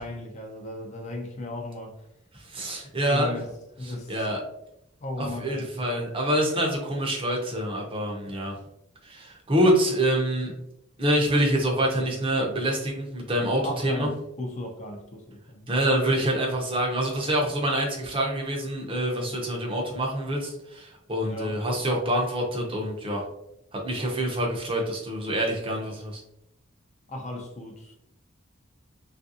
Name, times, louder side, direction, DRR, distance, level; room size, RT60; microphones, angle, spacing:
voice 1, 0.0-2.1 2.9-4.4 5.0-5.7 13.6-15.7 21.2-21.6 27.1-27.9, left 1 dB, 35° left, 2 dB, 0.4 m, -36 dB
voice 2, 2.5-3.3 4.1-4.4 5.2-8.5 9.1-10.5 11.0-14.1 15.7-23.2 23.7-26.2, right 1 dB, 25° right, 0 dB, 0.6 m, -26 dB
3.3 x 2.4 x 2.7 m, 0.82 s
head